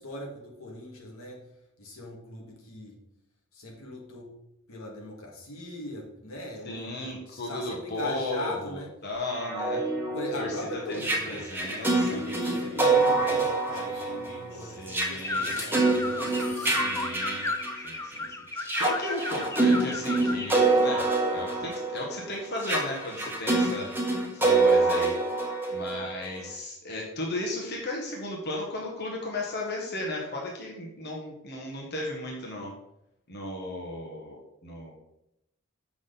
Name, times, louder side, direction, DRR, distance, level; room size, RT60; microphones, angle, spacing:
voice 1, 0.0-1.4 1.8-3.0 3.5-4.4 4.7-8.9 10.1-11.5 12.1-16.9, left 1 dB, 80° left, -1 dB, 1.9 m, -40 dB
voice 2, 6.6-9.8 10.3-12.2 14.5-15.5 16.5-17.5 17.8-18.3 18.5-25.1 25.7-32.7 33.3-34.9, left 2 dB, 50° left, -1 dB, 1.6 m, -35 dB
sound 1, 9.3-18.1 18.6-26.4, right 3 dB, 10° right, 1.3 m, -26 dB
sound 2, 11.7-15.0 15.4-17.1, left 2 dB, 35° left, 2.0 m, -42 dB
sound 3, 15.2-20.6, left 3 dB, 15° left, 0.4 m, -35 dB
7.5 x 6.3 x 3.9 m, 0.82 s
head